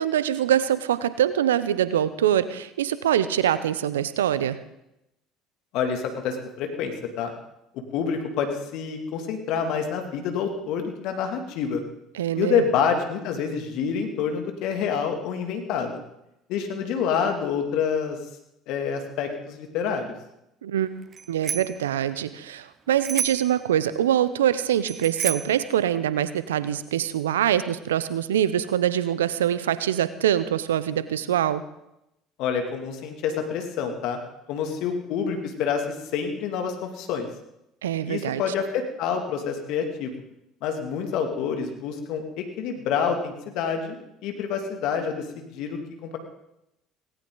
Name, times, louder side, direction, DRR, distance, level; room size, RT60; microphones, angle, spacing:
voice 1, 0.0-4.6 12.1-12.6 20.6-20.9 21.3-31.6 37.8-38.4, right 10 dB, 85° right, 15 dB, 0.8 m, -24 dB
voice 2, 5.7-7.3 7.9-11.8 12.4-16.0 16.5-18.2 18.7-20.1 32.4-34.2 34.5-37.3 38.1-40.1 40.6-44.0 44.2-46.2, left 6 dB, 65° left, 4 dB, 2.5 m, -27 dB
Bicycle bell, 21.1-21.8 23.0-23.6 24.9-25.6, right 6 dB, 40° right, 0.7 m, -30 dB
18.0 x 17.5 x 4.0 m, 0.84 s
hypercardioid pair, 65°, 0 cm